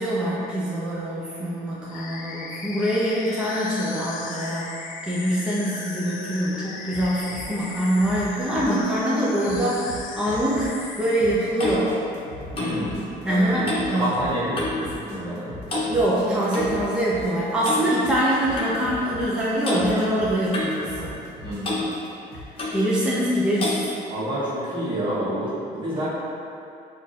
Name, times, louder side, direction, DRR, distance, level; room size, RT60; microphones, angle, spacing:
voice 1, 0.0-4.8 5.0-10.7 11.0-12.0 12.6-12.8 13.2-14.3 15.9-21.1 22.7-23.9 25.9-26.1, right 1 dB, 5° right, -7 dB, 0.7 m, -24 dB
sound 1, 1.9-11.6, left 4 dB, 55° left, 0.4 m, -37 dB
sound 2, 6.9-22.7, left 1 dB, 80° right, 0.9 m, -40 dB
Clock, 11.0-14.9 15.2-15.4 15.7-16.7 17.6-17.9 18.6-18.7 19.6-19.8 20.5-21.4 21.6-21.9 22.6-22.8 23.6-23.8, left 2 dB, 35° left, 1.0 m, -30 dB
voice 2, 12.5-13.0 13.2-13.6 13.9-15.6 21.4-21.8 24.1-26.1, right 1 dB, 30° right, -9 dB, 1.3 m, -28 dB
4.5 x 2.5 x 4.1 m, 2.6 s
cardioid pair, 110°, 17 cm